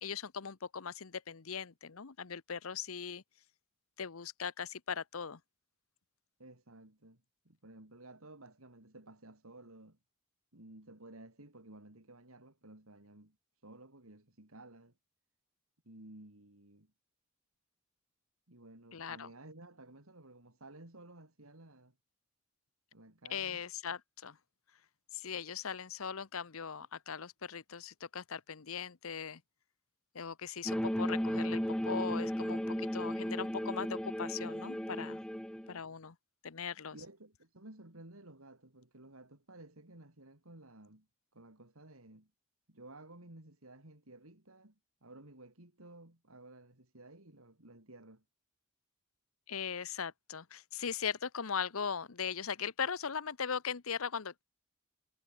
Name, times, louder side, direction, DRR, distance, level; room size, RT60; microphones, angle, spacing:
voice 1, 0.0-3.2 4.0-5.4 18.9-19.3 23.3-24.4 25.1-29.4 30.1-35.2 35.7-36.2 36.4-37.0 49.5-54.4, left 6 dB, 85° left, 0.9 m, -39 dB
voice 2, 6.4-10.0 10.5-13.4 13.6-14.9 15.9-16.9 18.5-21.9 22.9-23.6 35.5-35.8 36.9-41.1 41.3-42.3 42.7-48.2, right 2 dB, 85° right, 3.7 m, -55 dB
sound 1, 30.7-35.7, equal, 5° left, 0.5 m, -35 dB
head